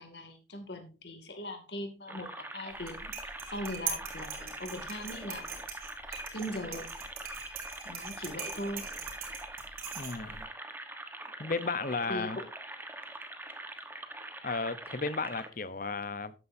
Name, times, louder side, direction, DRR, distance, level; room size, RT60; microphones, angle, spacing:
voice 1, 0.0-5.6 6.1-6.9 7.8-8.8 12.1-12.4, left 1 dB, 65° left, 2.4 m, -40 dB
sound 1, 2.1-15.5, right 2 dB, 10° right, 1.2 m, -44 dB
sound 2, 2.7-10.4, right 6 dB, 50° right, 3.3 m, -42 dB
voice 2, 10.0-10.5 11.4-12.4 14.4-16.3, left 4 dB, 45° left, 0.8 m, -34 dB
12.5 x 9.7 x 2.7 m
head